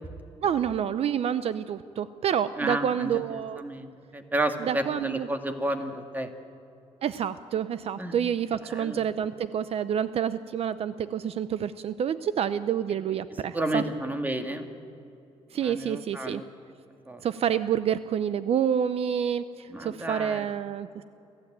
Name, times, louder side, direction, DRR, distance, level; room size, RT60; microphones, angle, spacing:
voice 1, 0.4-3.6 4.6-5.3 7.0-13.8 15.5-16.4 17.2-21.0, right 9 dB, 65° right, 13 dB, 0.6 m, -28 dB
voice 2, 2.6-6.3 8.0-8.1 8.7-9.0 13.5-14.7 15.5-16.4 17.1-17.2 19.7-20.5, right 1 dB, 15° right, 6 dB, 1.9 m, -31 dB
26.5 x 15.0 x 8.9 m, 2.8 s
cardioid pair, 110°, 11 cm